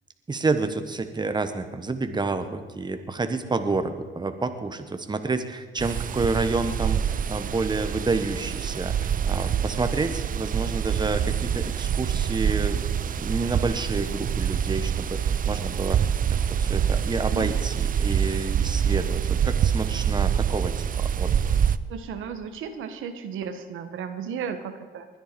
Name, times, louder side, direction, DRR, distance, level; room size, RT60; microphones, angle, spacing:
voice 1, 0.3-12.8 13.2-16.1 16.5-21.5, right 3 dB, 20° right, 8 dB, 1.3 m, -29 dB
sound 1, 5.8-21.8, right 8 dB, 45° right, 0.5 m, -26 dB
voice 2, 21.9-25.1, right 7 dB, 85° right, 8 dB, 1.2 m, -34 dB
20.5 x 10.5 x 5.2 m, 1.4 s
cardioid pair, 90°, 20 cm